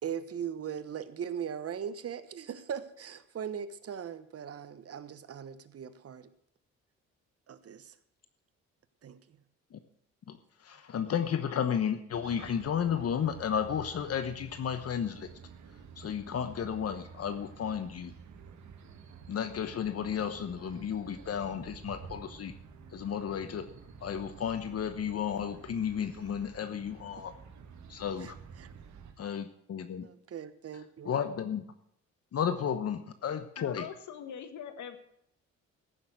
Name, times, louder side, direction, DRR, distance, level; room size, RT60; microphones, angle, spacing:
voice 1, 0.0-6.3 7.5-7.9 9.0-9.4 28.2-28.3 28.6-28.7 30.0-31.2, right 8 dB, 50° right, 1.2 m, -39 dB
voice 2, 10.3-15.3 16.0-18.1 19.3-22.5 22.9-23.7 24.0-27.3 27.9-28.3 29.2-30.1 31.0-31.6 32.3-33.9, left 8 dB, 55° left, 1.1 m, -33 dB
sound 1, 12.1-29.1, right 6 dB, 70° right, 1.9 m, -50 dB
voice 3, 33.2-35.0, left 8 dB, 70° left, 1.8 m, -43 dB
15.0 x 6.8 x 7.8 m
cardioid pair, 90°, 30 cm